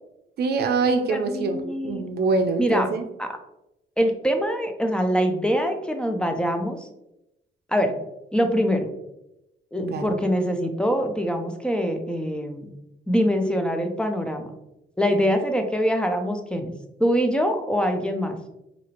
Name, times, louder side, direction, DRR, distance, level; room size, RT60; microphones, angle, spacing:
voice 1, 0.4-3.0 9.8-10.1, right 3 dB, 55° right, 6 dB, 0.5 m, -24 dB
voice 2, 1.1-2.0 2.6-2.9 3.2-3.3 4.0-6.9 7.7-7.9 8.3-8.9 9.7-12.7 13.1-14.5 15.0-16.7 17.0-18.4, equal, 5° left, 5 dB, 0.4 m, -24 dB
2.8 x 2.5 x 2.8 m, 0.87 s
cardioid pair, 90°, 20 cm